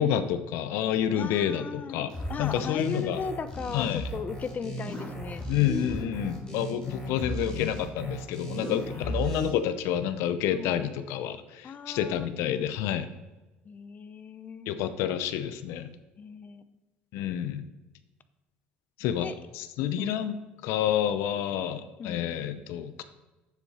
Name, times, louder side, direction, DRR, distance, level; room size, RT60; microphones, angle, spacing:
voice 1, 0.0-2.1 2.4-3.2 3.7-4.1 5.5-13.1 14.7-15.9 17.1-17.6 19.0-19.3 19.5-20.4 20.6-23.0, left 10 dB, 75° left, 11 dB, 0.7 m, -29 dB
voice 2, 1.1-2.0 2.3-5.4 6.4-6.5 6.7-7.4 8.6-9.2 10.5-10.8 11.6-12.3 13.7-14.7 16.2-16.6 19.2-19.3 20.0-20.1 22.0-22.2, left 5 dB, 35° left, 13 dB, 0.8 m, -37 dB
sound 1, 2.1-9.5, equal, 20° left, 3.8 m, -35 dB
9.8 x 7.4 x 4.3 m, 1.1 s
supercardioid pair, 95°, 5 cm